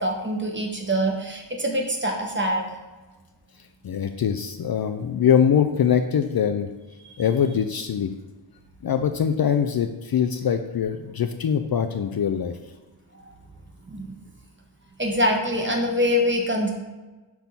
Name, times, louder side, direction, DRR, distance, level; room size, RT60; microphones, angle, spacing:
voice 1, 0.0-2.7 7.0-7.2 13.1-13.3 13.9-14.1 15.0-16.7, equal, 25° right, 1 dB, 1.2 m, -24 dB
voice 2, 3.8-6.7 7.2-8.1 8.8-12.6, left 8 dB, 50° left, 8 dB, 0.5 m, -23 dB
6.0 x 3.6 x 5.7 m, 1.2 s
wide cardioid pair, 95°, 48 cm